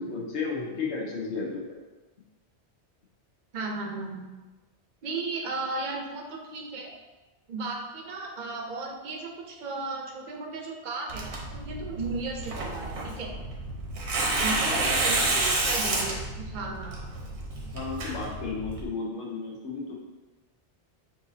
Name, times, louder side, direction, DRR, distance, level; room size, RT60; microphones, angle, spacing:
voice 1, 0.0-1.8 14.7-14.9 17.7-19.9, left 4 dB, 80° left, -2 dB, 1.2 m, -33 dB
voice 2, 3.5-4.3 5.0-6.9 7.5-13.3 14.4-17.0, right 3 dB, 50° right, 1 dB, 0.7 m, -35 dB
Tearing, 11.1-18.9, right 2 dB, 80° right, 1.1 m, -30 dB
5.9 x 2.7 x 2.7 m, 1.2 s
omnidirectional pair, 1.2 m